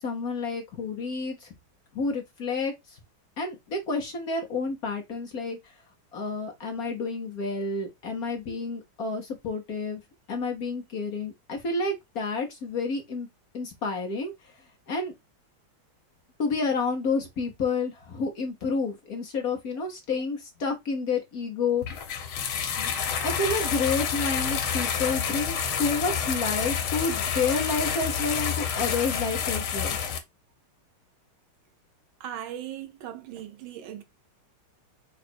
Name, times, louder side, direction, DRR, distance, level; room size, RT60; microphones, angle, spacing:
voice 1, 0.0-1.5 1.9-3.0 3.4-5.7 6.1-10.0 10.3-13.3 13.5-14.3 14.9-15.1 16.4-21.8 22.7-22.9 23.2-30.0, left 4 dB, 55° left, 1.2 m, -30 dB
Bathtub Water, 21.8-30.2, left 7 dB, 80° left, 1.8 m, -28 dB
voice 2, 32.2-34.0, right 10 dB, 75° right, 1.5 m, -38 dB
5.1 x 2.4 x 4.2 m
omnidirectional pair, 2.3 m